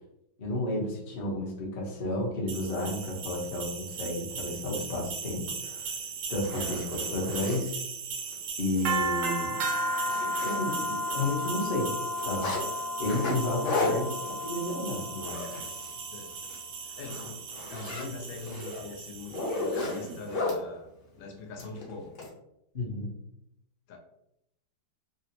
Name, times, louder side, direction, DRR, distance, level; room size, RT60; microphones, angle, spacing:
voice 1, 0.4-5.9 6.3-7.8 8.6-9.6 10.4-11.9 12.2-15.4 22.7-23.1, left 1 dB, 50° left, -3 dB, 0.6 m, -32 dB
sound 1, 2.5-20.2, right 2 dB, 75° right, 1.3 m, -35 dB
Zipper (clothing), 5.8-5.9 6.3-7.6 8.2-8.3 8.7-8.8 9.2-9.3 9.6-11.0 11.2-12.6 13.0-16.0 16.3-16.6 17.0-20.6 21.6-22.3, left 2 dB, 65° left, 1.6 m, -35 dB
voice 2, 16.1-16.5 16.8-22.2 23.9-24.0, left 3 dB, 80° left, 3 dB, 1.3 m, -42 dB
3.9 x 2.0 x 2.7 m, 0.80 s
omnidirectional pair, 2.1 m